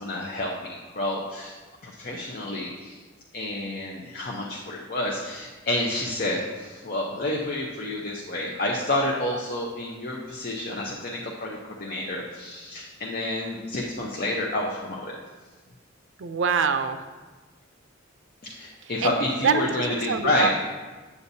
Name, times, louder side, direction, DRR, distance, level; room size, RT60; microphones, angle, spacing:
voice 1, 0.0-1.5 1.8-3.0 3.3-15.2 18.6-20.5, left 1 dB, 50° left, -2 dB, 0.7 m, -29 dB
voice 2, 16.2-17.0 19.0-20.5, right 6 dB, 70° right, 9 dB, 0.5 m, -25 dB
8.4 x 8.2 x 2.7 m, 1.3 s
head